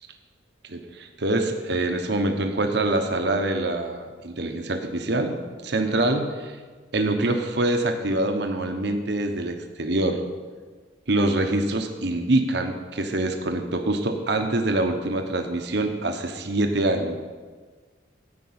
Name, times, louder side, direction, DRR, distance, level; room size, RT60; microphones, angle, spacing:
voice 1, 0.7-5.4 5.6-6.5 6.9-10.2 11.1-17.2, right 2 dB, 65° right, 4 dB, 1.1 m, -25 dB
13.5 x 5.3 x 8.7 m, 1.5 s
head